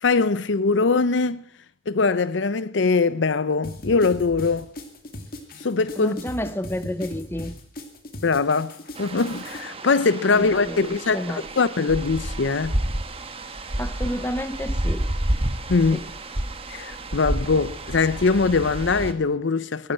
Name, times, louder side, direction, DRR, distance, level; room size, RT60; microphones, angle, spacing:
voice 1, 0.0-1.4 1.9-4.7 5.6-6.1 8.2-12.8 15.7-16.0 16.7-19.9, left 4 dB, 80° left, 0.6 m, -22 dB
sound 1, 3.6-9.6, left 1 dB, 50° left, 2.3 m, -38 dB
voice 2, 6.0-7.6 10.3-11.4 13.8-15.1 15.9-16.0, equal, 10° left, 0.8 m, -30 dB
sound 2, 9.0-19.1, right 1 dB, 30° right, 1.3 m, -30 dB
16.0 x 11.5 x 7.8 m
head